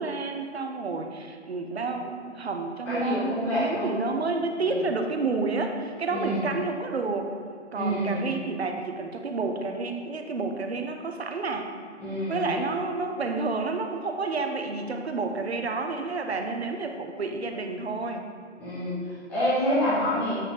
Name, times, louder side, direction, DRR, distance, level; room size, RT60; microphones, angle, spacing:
voice 1, 0.0-7.3 7.7-11.7 12.3-18.2, right 3 dB, 55° right, 5 dB, 0.8 m, -30 dB
voice 2, 2.8-4.0 6.1-6.4 7.7-8.2 12.0-12.5 18.6-18.9 19.3-20.3, equal, 5° left, -11 dB, 0.9 m, -27 dB
8.1 x 3.6 x 4.0 m, 2.2 s
figure-of-eight pair, 145°, 37 cm